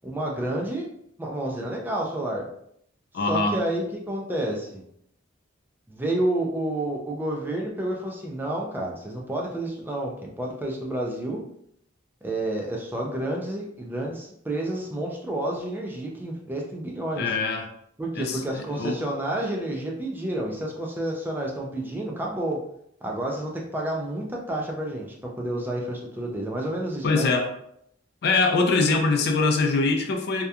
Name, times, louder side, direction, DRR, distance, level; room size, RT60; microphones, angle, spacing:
voice 1, 0.0-0.9 1.2-2.5 3.3-4.8 5.9-11.4 12.2-17.3 18.0-22.6 23.0-27.3, right 1 dB, 10° right, -1 dB, 0.4 m, -30 dB
voice 2, 3.1-3.6 17.2-17.7 18.1-19.0 27.0-27.5 28.2-30.5, left 3 dB, 55° left, 4 dB, 0.4 m, -23 dB
2.7 x 2.2 x 2.3 m, 0.71 s
head